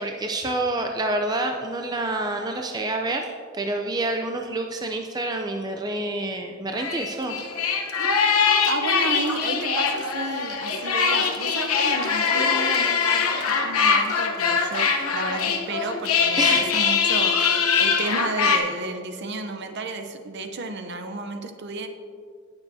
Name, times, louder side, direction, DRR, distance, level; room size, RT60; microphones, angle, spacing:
voice 1, 0.0-7.4 16.4-16.7, right 2 dB, 20° right, 3 dB, 0.5 m, -28 dB
sound 1, 6.8-18.6, left 5 dB, 85° left, 1.0 m, -22 dB
voice 2, 8.7-21.9, right 3 dB, 50° right, 7 dB, 0.7 m, -32 dB
18.0 x 7.0 x 2.7 m, 2.1 s
head